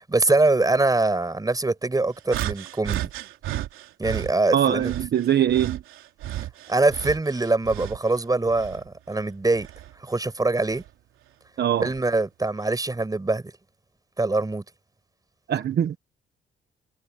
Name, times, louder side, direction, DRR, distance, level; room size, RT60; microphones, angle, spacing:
voice 1, 0.1-3.1 4.0-4.9 6.7-9.7 10.0-10.8 11.8-13.4 14.2-14.6, right 2 dB, 20° right, 7.3 m, -23 dB
sound 1, 2.3-4.3 4.8-8.1 8.5-9.9 10.7-10.9 11.8-12.0, right 13 dB, 90° right, 3.2 m, -33 dB
voice 2, 4.5-5.8 11.6-11.9 15.5-16.0, right 10 dB, 55° right, 1.2 m, -22 dB
cardioid pair, 90°, 20 cm